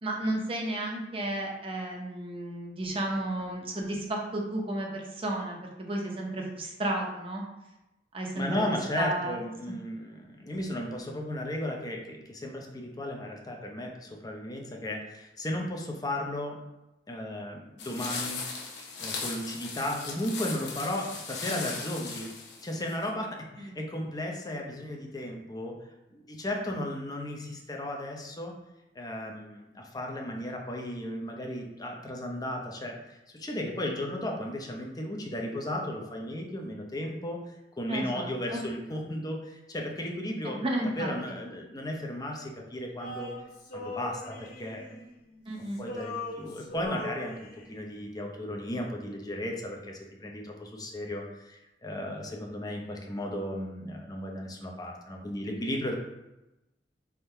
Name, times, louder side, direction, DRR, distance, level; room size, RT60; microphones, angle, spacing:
voice 1, 0.0-7.4 8.1-8.5 8.9-9.4 9.7-9.8 23.6-23.8 37.9-38.6 40.4-41.1 45.5-45.8, right 1 dB, 30° right, 0 dB, 0.7 m, -33 dB
voice 2, 8.4-16.6 17.1-18.4 19.0-22.3 22.6-25.7 26.1-28.5 28.9-37.4 37.8-40.6 41.0-43.3 43.7-45.0 45.6-55.9, left 1 dB, 20° left, 1 dB, 0.6 m, -35 dB
sound 1, 17.8-23.1, left 4 dB, 85° left, 0.8 m, -38 dB
Male singing, 43.0-45.4 45.7-47.9, left 2 dB, 50° left, 0.9 m, -41 dB
3.6 x 2.7 x 4.4 m, 0.97 s
head